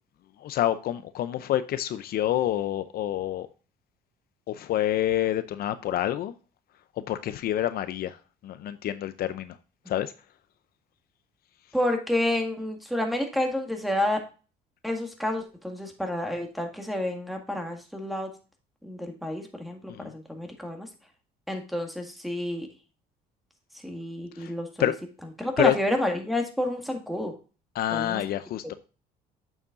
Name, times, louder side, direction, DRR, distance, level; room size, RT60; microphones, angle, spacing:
voice 1, 0.4-3.5 4.5-6.3 7.0-8.2 8.4-9.6 9.9-10.1 19.9-20.1 24.4-24.5 24.8-25.0 25.6-25.7 27.7-28.7, left 12 dB, 65° left, 12 dB, 0.6 m, -27 dB
voice 2, 11.7-14.2 14.8-18.3 18.8-20.9 21.5-22.7 23.8-24.7 25.4-27.3 27.9-28.2 28.6-28.7, left 1 dB, ahead, 3 dB, 1.9 m, -29 dB
8.4 x 7.2 x 2.5 m, 0.35 s
cardioid pair, 110°, 17 cm